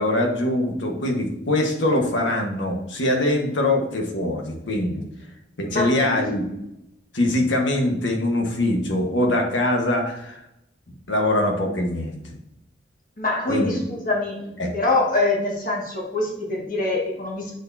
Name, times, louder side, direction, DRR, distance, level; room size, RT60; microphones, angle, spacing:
voice 1, 0.0-5.0 5.6-6.4 7.1-10.4 11.1-12.3 13.5-13.7 14.6-14.8, left 1 dB, 90° left, 2 dB, 1.4 m, -23 dB
voice 2, 5.6-6.2 13.2-14.4 14.7-17.5, left 2 dB, 45° left, -2 dB, 1.9 m, -24 dB
7.9 x 6.6 x 2.8 m, 0.86 s
head